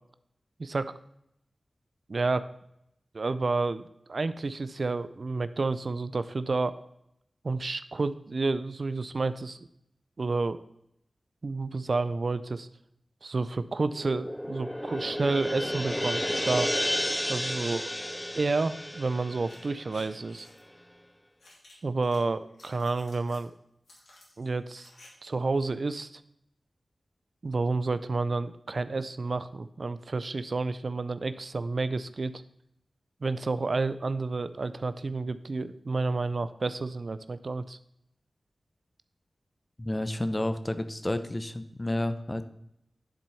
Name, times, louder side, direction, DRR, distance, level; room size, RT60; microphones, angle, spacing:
voice 1, 0.6-0.9 2.1-2.5 3.1-6.8 7.4-9.6 10.2-10.6 11.4-12.7 13.2-16.7 17.3-17.9 18.3-20.5 21.8-23.5 24.4-24.9 25.2-26.2 27.4-32.4 33.2-37.8, right 3 dB, 60° right, 13 dB, 0.5 m, -30 dB
sound 1, 13.9-20.4, equal, 10° left, 0.3 m, -32 dB
sound 2, 19.4-20.6 21.4-22.2 22.5-23.4 23.9-25.1 25.3-25.4, left 2 dB, 85° left, 2.8 m, -54 dB
voice 2, 39.8-42.4, left 1 dB, 25° left, 10 dB, 0.9 m, -30 dB
10.5 x 4.5 x 5.5 m, 0.78 s
cardioid pair, 45°, 0 cm